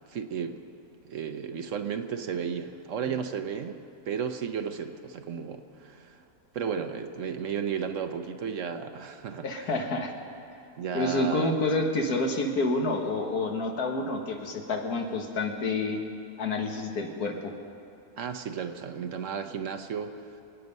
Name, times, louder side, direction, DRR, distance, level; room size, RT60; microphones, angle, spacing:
voice 1, 0.1-0.6 1.0-3.8 4.1-6.2 6.5-9.7 10.8-11.6 18.2-20.1, right 7 dB, 60° right, 7 dB, 1.1 m, -33 dB
voice 2, 9.4-10.1 10.9-16.0 16.4-17.5, left 2 dB, 85° left, 3 dB, 2.0 m, -28 dB
27.0 x 9.1 x 5.4 m, 2.8 s
omnidirectional pair, 1.6 m